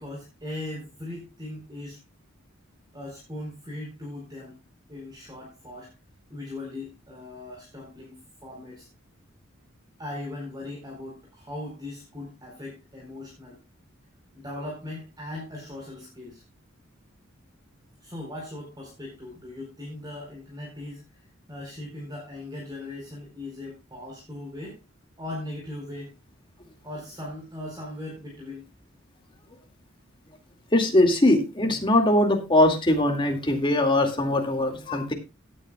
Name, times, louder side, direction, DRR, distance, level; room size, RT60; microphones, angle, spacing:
voice 1, 0.0-2.0 2.9-4.6 4.9-5.9 6.3-8.9 10.0-13.6 14.3-16.4 18.0-21.0 21.5-24.8 25.2-26.1 26.8-28.7, left 1 dB, 20° right, -2 dB, 4.3 m, -39 dB
voice 2, 30.7-35.1, left 1 dB, 25° left, 3 dB, 2.4 m, -21 dB
17.0 x 9.5 x 2.4 m, 0.26 s
head